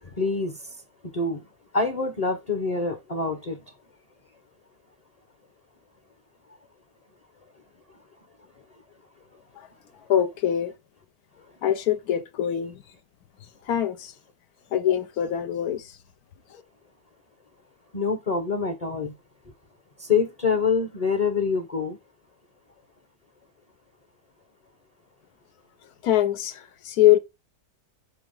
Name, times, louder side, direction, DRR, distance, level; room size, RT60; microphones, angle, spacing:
voice 1, 0.0-0.7 1.1-1.4 1.7-3.6 17.9-19.1 20.0-22.0, left 5 dB, 35° left, 0.7 m, -26 dB
voice 2, 10.1-10.7 11.6-12.8 13.6-14.1 14.7-16.0 16.5-16.6 26.0-27.2, left 11 dB, 85° left, 1.2 m, -23 dB
5.9 x 3.4 x 5.3 m
omnidirectional pair, 1.6 m